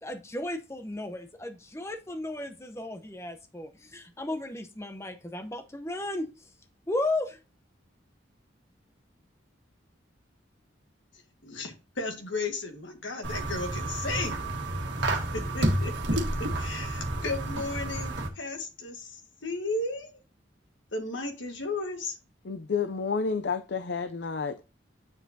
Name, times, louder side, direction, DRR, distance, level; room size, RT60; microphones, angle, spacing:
voice 1, 0.0-6.5 6.9-7.4, left 2 dB, 15° left, 0.7 m, -34 dB
voice 2, 11.4-14.4 15.1-20.2 20.9-22.2, left 2 dB, 80° left, 1.7 m, -35 dB
sound 1, 13.2-18.3, right 1 dB, 65° right, 1.7 m, -30 dB
voice 3, 22.4-24.6, left 5 dB, 60° left, 0.5 m, -30 dB
7.9 x 7.1 x 2.7 m
head